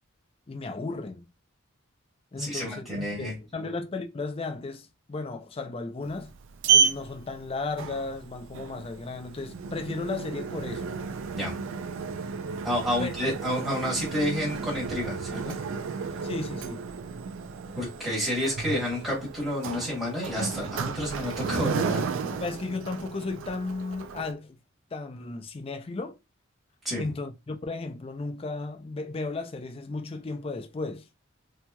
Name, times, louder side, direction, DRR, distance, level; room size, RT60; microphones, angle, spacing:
voice 1, 0.5-1.3 2.3-6.3 6.7-10.9 13.0-13.3 16.2-16.8 21.6-24.6 24.9-26.2 27.0-31.1, left 3 dB, 25° left, 0.3 m, -35 dB
voice 2, 2.4-3.3 11.3-11.6 12.6-15.6 17.7-22.0 26.8-27.0, equal, ahead, 1.1 m, -30 dB
Sliding door, 6.0-24.3, right 6 dB, 65° right, 0.3 m, -32 dB
2.9 x 2.7 x 2.2 m
head